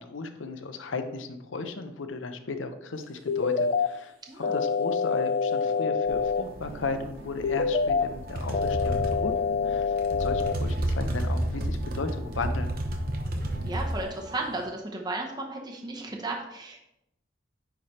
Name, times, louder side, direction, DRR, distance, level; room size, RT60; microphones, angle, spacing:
voice 1, 0.0-12.8, left 3 dB, 85° left, 7 dB, 0.7 m, -35 dB
sound 1, 3.0-14.7, right 1 dB, 75° right, 1.8 m, -48 dB
sound 2, 3.3-3.9 4.4-6.4 7.4-8.0 8.5-10.5, left 5 dB, 45° left, 0.3 m, -26 dB
voice 2, 4.3-4.6 13.6-16.8, right 2 dB, 20° right, 0 dB, 0.8 m, -34 dB
sound 3, 6.1-14.0, right 1 dB, 50° right, 0.9 m, -31 dB
9.5 x 3.3 x 4.3 m, 0.83 s
head